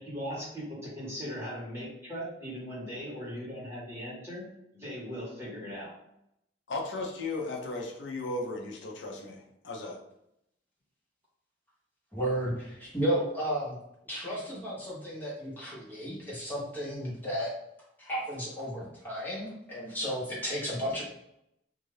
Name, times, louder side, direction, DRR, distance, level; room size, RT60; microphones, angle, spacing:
voice 1, 0.1-4.4 4.7-5.9, equal, 15° right, -8 dB, 1.3 m, -39 dB
voice 2, 6.7-10.0, left 2 dB, 80° left, 0 dB, 0.6 m, -36 dB
voice 3, 12.1-13.8 14.1-17.5 18.0-21.0, equal, 10° left, -7 dB, 1.0 m, -33 dB
2.6 x 2.4 x 3.2 m, 0.80 s
head